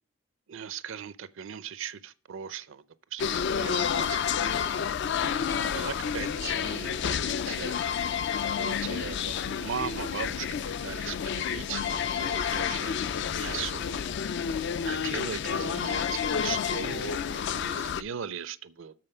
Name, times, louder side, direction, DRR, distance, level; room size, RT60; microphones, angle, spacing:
voice 1, 0.5-2.8 3.1-4.4 5.6-8.2 8.6-14.0 14.9-18.9, right 7 dB, 60° right, 0.5 m, -39 dB
sound 1, 3.2-18.0, left 7 dB, 50° left, 0.3 m, -30 dB
7.7 x 4.2 x 6.5 m
head